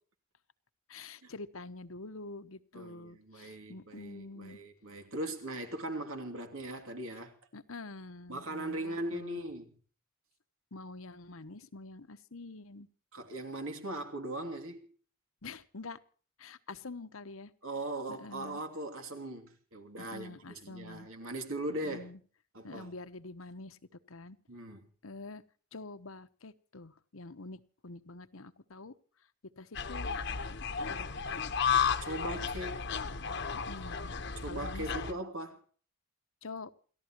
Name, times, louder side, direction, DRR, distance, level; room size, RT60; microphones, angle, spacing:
voice 1, 0.9-4.6 7.5-9.4 10.7-12.9 15.4-16.0 16.4-17.5 18.1-18.6 20.0-21.1 21.7-22.2 22.6-23.8 24.1-24.4 25.0-25.4 25.7-28.9 29.6-30.1 30.8-31.4 33.5-34.1 34.4-35.2 36.4-36.7, left 3 dB, 80° left, 1.1 m, -46 dB
voice 2, 2.7-7.3 8.3-9.7 13.1-14.9 17.6-22.1 22.5-22.9 24.5-24.9 32.0-32.9 34.4-35.6, right 1 dB, 80° right, 2.8 m, -39 dB
sound 1, 29.7-35.1, left 6 dB, 55° left, 1.1 m, -33 dB
29.0 x 14.5 x 3.0 m
head